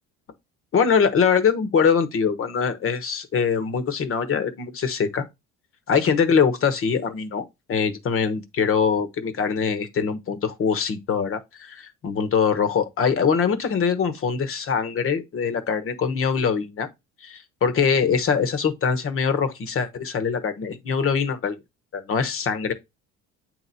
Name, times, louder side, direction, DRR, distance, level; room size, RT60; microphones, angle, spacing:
voice 1, 0.7-5.2 5.9-16.9 17.2-21.6 21.9-22.7, left 6 dB, 45° left, 1.2 m, -23 dB
8.5 x 3.0 x 4.0 m
cardioid pair, 110°, 30 cm